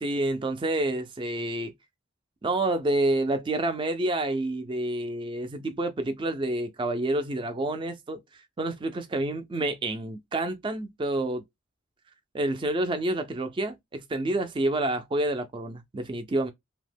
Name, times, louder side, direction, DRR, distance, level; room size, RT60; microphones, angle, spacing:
voice 1, 0.0-1.7 2.4-8.2 8.6-11.4 12.3-16.5, right 1 dB, 20° right, 0.3 m, -28 dB
2.8 x 2.0 x 3.2 m
head